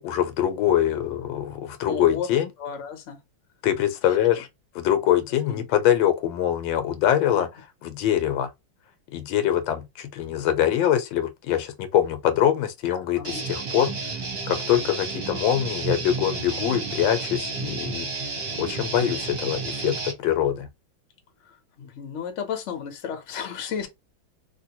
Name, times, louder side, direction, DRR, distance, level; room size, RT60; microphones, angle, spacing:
voice 1, 0.0-2.5 3.6-4.5 4.7-7.5 7.8-8.5 9.1-13.9 14.5-18.1 18.6-20.7, left 11 dB, 80° left, 1.3 m, -23 dB
voice 2, 1.9-2.3 2.6-3.2 4.0-4.2 5.5-5.7 7.3-7.4 13.1-13.4 21.4-23.9, left 7 dB, 55° left, 0.9 m, -33 dB
Guitar, 13.2-20.1, right 4 dB, 45° right, 0.9 m, -31 dB
3.2 x 2.6 x 2.9 m
omnidirectional pair, 2.2 m